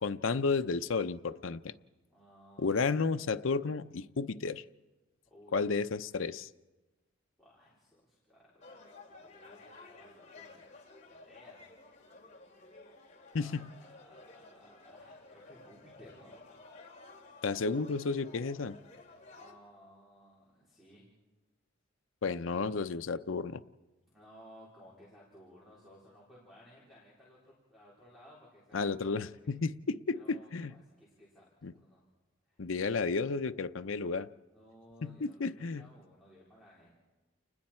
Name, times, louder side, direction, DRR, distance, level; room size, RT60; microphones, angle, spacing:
voice 1, 0.0-1.7 2.6-4.6 5.5-6.5 13.3-13.7 17.4-18.8 22.2-23.6 28.7-30.7 31.6-31.7 32.6-34.3 35.0-35.9, left 4 dB, 85° left, 10 dB, 0.6 m, -32 dB
voice 2, 2.1-2.9 5.3-5.6 7.4-10.6 11.1-11.6 13.3-16.4 19.3-21.0 24.1-29.6 30.1-32.0 32.5-32.6 34.5-37.0, equal, ahead, -6 dB, 4.2 m, -58 dB
sound 1, 8.6-19.5, left 3 dB, 40° left, 2.8 m, -54 dB
29.5 x 20.0 x 4.4 m, 1.2 s
head